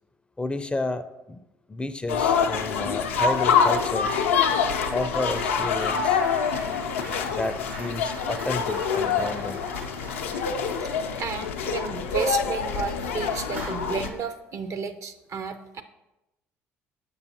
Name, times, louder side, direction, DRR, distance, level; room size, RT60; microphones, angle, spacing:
voice 1, 0.4-1.4 1.7-4.2 4.9-6.2 7.3-9.6, left 2 dB, 15° left, 11 dB, 0.4 m, -31 dB
sound 1, 2.1-14.1, left 6 dB, 90° left, 0.4 m, -26 dB
sound 2, 3.7-4.0 4.3-12.4 12.8-12.9 13.4-14.3, right 3 dB, 80° right, 1.4 m, -44 dB
voice 2, 11.2-15.8, right 5 dB, 50° right, 10 dB, 0.5 m, -32 dB
6.7 x 5.5 x 2.8 m, 0.96 s
hypercardioid pair, 60°, 7 cm